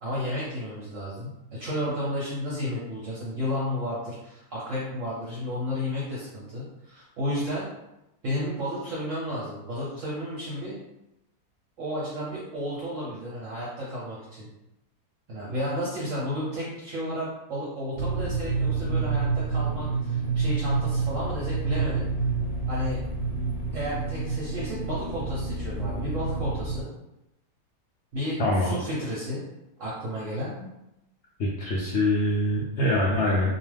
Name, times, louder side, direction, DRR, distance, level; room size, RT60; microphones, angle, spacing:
voice 1, 0.0-7.7 8.2-10.8 11.8-14.5 15.3-22.1 22.7-23.0 23.7-26.9 28.1-29.4 29.8-30.5, equal, 60° right, -7 dB, 0.9 m, -32 dB
sound 1, 17.9-26.8, right 4 dB, 70° left, 1.0 m, -28 dB
voice 2, 28.4-28.7 31.4-33.5, left 1 dB, 85° left, -5 dB, 0.6 m, -24 dB
2.4 x 2.4 x 3.2 m, 0.89 s
omnidirectional pair, 1.7 m